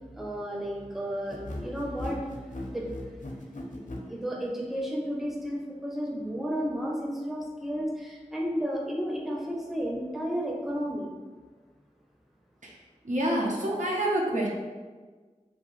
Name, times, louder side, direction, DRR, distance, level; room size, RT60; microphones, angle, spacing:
voice 1, 0.2-2.3 2.6-2.9 3.7-11.1, equal, ahead, -2 dB, 0.5 m, -32 dB
sound 1, 1.3-4.1, left 1 dB, 80° left, 0.4 m, -38 dB
voice 2, 13.0-14.5, right 1 dB, 80° right, -2 dB, 0.6 m, -27 dB
2.7 x 2.3 x 3.0 m, 1.4 s
wide cardioid pair, 55°, 13 cm